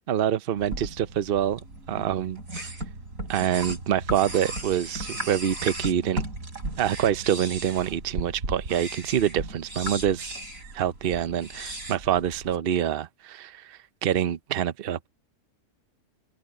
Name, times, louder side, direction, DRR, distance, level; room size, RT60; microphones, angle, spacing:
voice 1, 0.1-2.7 3.3-6.2 6.8-10.3 10.7-15.1, right 10 dB, 50° right, 0.8 m, -26 dB
sound 1, 0.6-12.6, right 2 dB, 70° right, 5.1 m, -36 dB
omnidirectional pair, 1.5 m